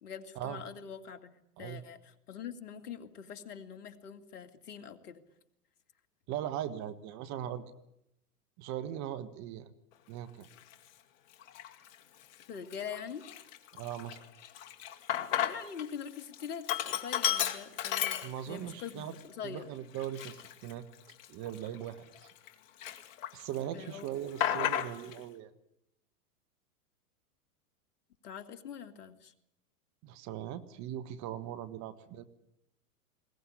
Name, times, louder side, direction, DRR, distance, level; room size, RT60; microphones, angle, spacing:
voice 1, 0.0-1.3 1.6-5.2 12.5-13.2 15.4-19.7 23.7-24.1 28.2-29.3, left 7 dB, 75° left, 7 dB, 2.6 m, -44 dB
voice 2, 6.3-7.6 8.6-9.7 10.1-10.5 13.7-14.2 18.2-19.1 19.4-20.9 21.3-22.0 23.3-25.5 30.0-32.2, right 11 dB, 35° right, 13 dB, 1.5 m, -39 dB
Sink (filling or washing), 10.6-10.7 11.4-11.9 12.3-12.4 12.7-15.9 16.2-18.7 19.2-19.3 19.9-22.5 22.8-23.6 23.8-25.2, left 10 dB, 55° left, 2.3 m, -34 dB
21.0 x 19.5 x 9.9 m, 0.80 s
hypercardioid pair, 120°, 46 cm